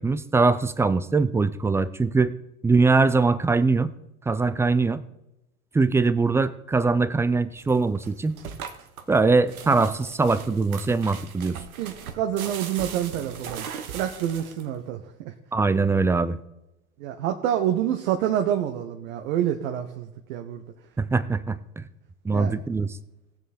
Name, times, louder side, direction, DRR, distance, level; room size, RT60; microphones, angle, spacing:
voice 1, 0.0-2.3 2.6-3.9 4.3-5.0 5.7-8.4 9.1-11.6 15.5-16.4 21.0-21.8 22.2-22.9, right 3 dB, 5° right, 15 dB, 0.4 m, -22 dB
sound 1, 7.6-14.8, right 7 dB, 75° right, 1.3 m, -39 dB
voice 2, 11.8-15.3 17.0-20.6 22.3-22.6, right 10 dB, 60° right, 5 dB, 1.1 m, -27 dB
18.5 x 7.1 x 4.3 m, 0.91 s
figure-of-eight pair, 75°, 43 cm